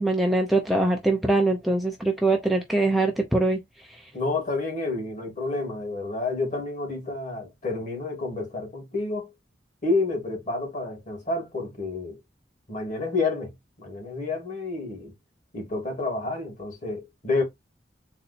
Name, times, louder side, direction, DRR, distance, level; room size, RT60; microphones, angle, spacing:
voice 1, 0.0-3.6, right 2 dB, ahead, 0.7 m, -23 dB
voice 2, 4.1-9.3 9.8-12.2 12.7-15.1 15.5-17.4, left 3 dB, 45° left, 2.6 m, -29 dB
4.1 x 2.8 x 4.2 m
head